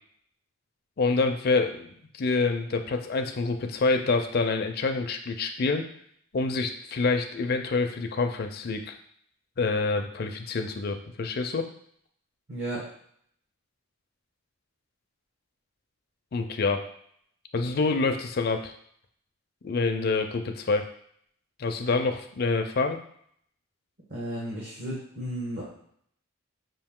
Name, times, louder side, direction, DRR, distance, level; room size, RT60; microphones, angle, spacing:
voice 1, 1.0-5.9 6.3-9.0 9.6-11.7 16.3-16.9 17.5-18.7 19.6-20.9 21.6-23.0, left 3 dB, 50° left, 5 dB, 0.4 m, -27 dB
voice 2, 12.5-12.8 24.1-25.6, right 1 dB, 55° right, -6 dB, 1.1 m, -33 dB
5.4 x 2.7 x 3.6 m, 0.66 s
head